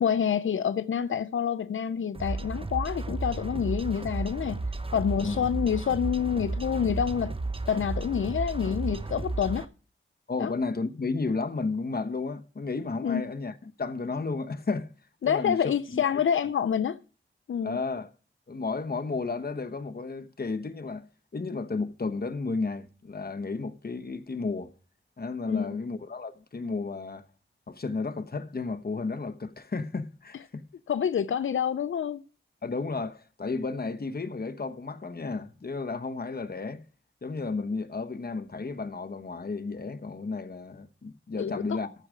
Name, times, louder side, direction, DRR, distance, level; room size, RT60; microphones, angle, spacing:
voice 1, 0.0-4.6 4.9-7.4 7.7-9.7 10.4-10.5 13.0-13.2 15.2-17.0 17.5-17.8 25.5-25.8 30.9-32.2 41.4-41.6, left 8 dB, 80° left, 0.4 m, -27 dB
sound 1, 2.1-9.7, right 2 dB, 25° right, 0.9 m, -33 dB
voice 2, 10.3-14.9 15.2-15.6 15.9-16.2 17.6-18.1 18.5-24.7 25.2-27.3 27.7-30.7 32.6-36.8 37.2-41.9, left 4 dB, 50° left, 1.0 m, -33 dB
14.0 x 4.8 x 6.3 m
wide cardioid pair, 60°, 20 cm